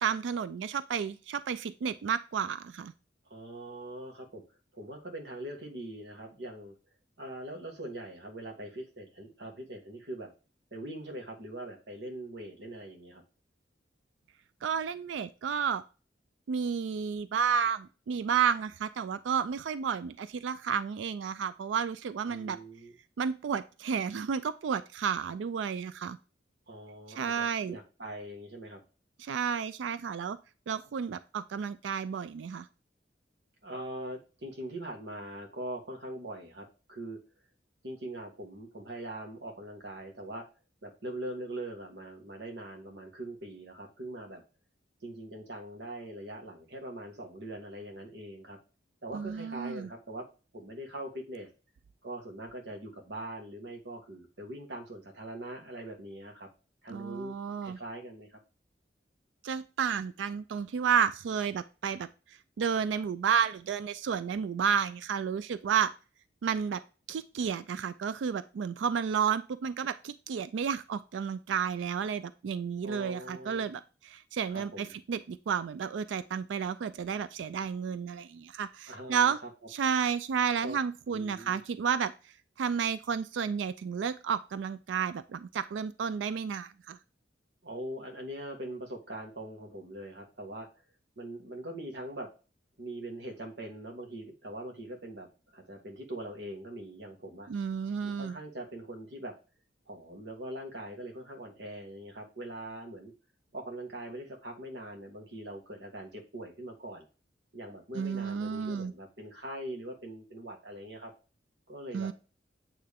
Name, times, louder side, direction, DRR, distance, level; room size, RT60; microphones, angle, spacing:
voice 1, 0.0-2.9 14.6-15.8 16.5-22.6 23.2-26.2 27.1-27.8 29.2-30.4 30.7-32.7 49.1-49.9 56.9-57.8 59.4-62.1 62.6-65.9 66.4-66.8 67.1-79.4 79.7-82.1 82.6-87.0 97.5-98.4 107.9-108.9 111.9-112.1, right 7 dB, 85° right, 14 dB, 0.3 m, -31 dB
voice 2, 3.3-4.4 4.7-6.7 7.2-10.3 10.7-13.2 22.3-22.9 26.7-28.8 33.6-37.2 37.8-40.5 40.8-44.4 45.0-48.6 49.0-50.3 50.5-51.5 52.0-56.5 56.8-57.3 57.6-58.4 72.8-73.7 74.5-74.9 78.9-79.5 80.6-80.8 81.1-81.6 87.6-90.7 91.2-92.3 92.8-97.5 98.0-99.3 99.8-103.1 103.5-107.1 107.5-111.1 111.7-112.1, right 1 dB, 70° right, 2 dB, 1.7 m, -42 dB
8.6 x 3.3 x 3.5 m, 0.33 s
head